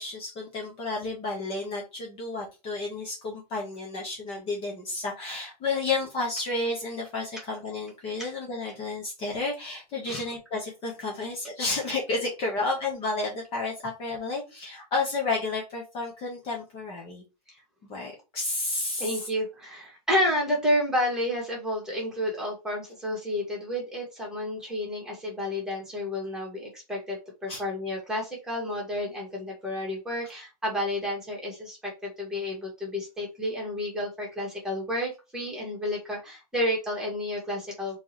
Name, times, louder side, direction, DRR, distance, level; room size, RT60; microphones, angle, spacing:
voice 1, 0.0-17.2 17.9-19.3 27.5-27.6, left 3 dB, 25° left, -1 dB, 1.2 m, -31 dB
voice 2, 19.0-38.0, left 1 dB, 5° right, -3 dB, 1.9 m, -30 dB
3.5 x 3.2 x 3.1 m, 0.27 s
hypercardioid pair, 140°, 20 cm